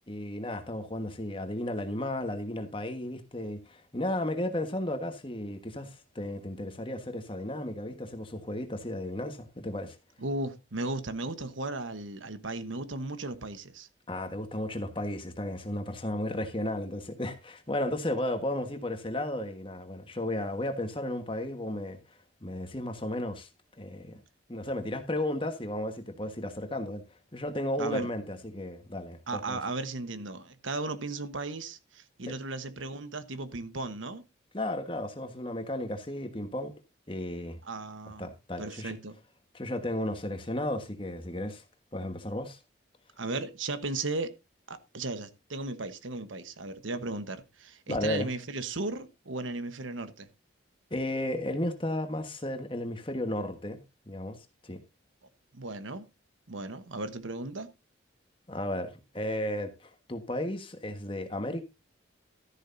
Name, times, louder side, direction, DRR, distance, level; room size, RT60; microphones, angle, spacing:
voice 1, 0.1-10.0 14.1-22.0 22.4-23.5 23.8-24.2 24.5-27.0 27.3-29.6 32.3-32.4 34.5-36.7 37.1-37.6 38.2-39.0 39.5-41.6 41.9-42.6 47.9-48.3 50.9-53.8 54.1-54.4 54.6-54.8 58.5-61.6, left 1 dB, 25° left, 1.4 m, -34 dB
voice 2, 10.2-13.9 27.8-28.1 29.3-34.2 37.6-38.3 38.6-39.2 43.2-44.3 44.7-50.3 55.5-56.1 56.5-57.7, right 2 dB, 80° right, 1.2 m, -36 dB
13.0 x 11.0 x 2.7 m
head